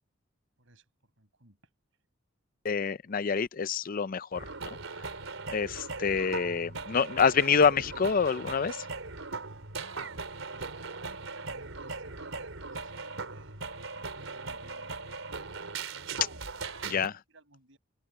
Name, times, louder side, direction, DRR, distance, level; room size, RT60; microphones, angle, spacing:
voice 1, 0.6-1.6 9.4-13.6 13.9-16.2 16.6-17.8, right 2 dB, 70° right, 6.6 m, -56 dB
voice 2, 2.6-4.4 5.5-8.8 16.8-17.1, left 6 dB, 45° left, 0.5 m, -27 dB
sound 1, 4.3-17.1, right 4 dB, 90° right, 3.8 m, -39 dB
open air
head